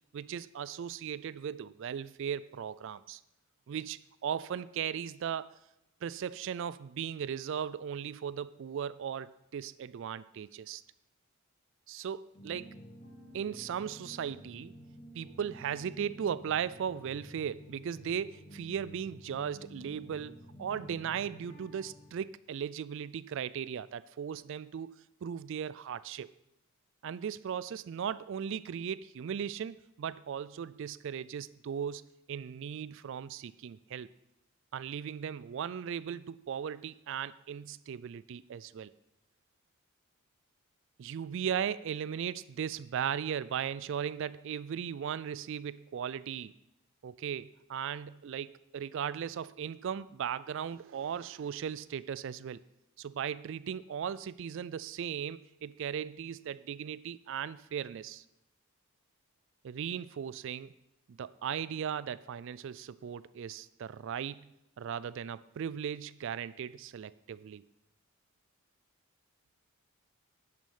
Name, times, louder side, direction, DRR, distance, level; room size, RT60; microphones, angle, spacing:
voice 1, 0.1-3.2 3.7-5.5 6.0-10.8 11.9-12.7 13.3-14.7 15.2-25.0 25.2-26.3 27.0-34.1 34.7-38.9 41.0-46.5 47.0-52.6 53.0-58.2 59.6-60.7 61.1-64.5 64.8-67.6, right 8 dB, 60° right, 18 dB, 0.3 m, -37 dB
sound 1, 12.3-22.1, equal, 30° left, 2.7 m, -51 dB
11.0 x 6.2 x 5.6 m, 0.86 s
head